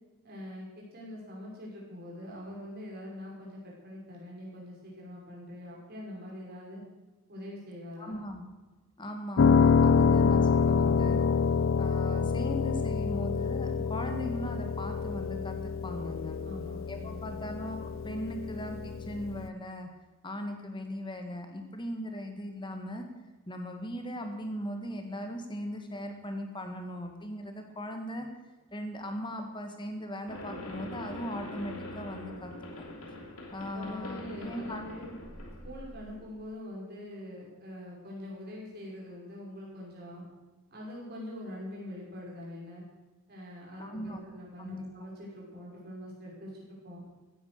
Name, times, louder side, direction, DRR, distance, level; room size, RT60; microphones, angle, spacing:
voice 1, 0.2-6.8 7.3-8.2 16.4-17.4 33.6-35.1 35.6-40.3 40.7-42.8 43.3-47.0, left 1 dB, 50° right, -3 dB, 5.5 m, -44 dB
voice 2, 8.0-8.4 9.0-11.3 11.8-16.4 16.9-19.9 20.2-23.0 23.5-28.3 28.7-32.5 32.8-32.9 33.5-35.0 43.8-44.2 44.6-44.8, equal, 20° left, 5 dB, 1.8 m, -38 dB
Piano, 9.4-19.5, left 5 dB, 65° left, 0.5 m, -27 dB
sound 1, 30.3-36.3, left 1 dB, 90° left, 2.9 m, -43 dB
15.5 x 9.9 x 6.7 m, 1.1 s
head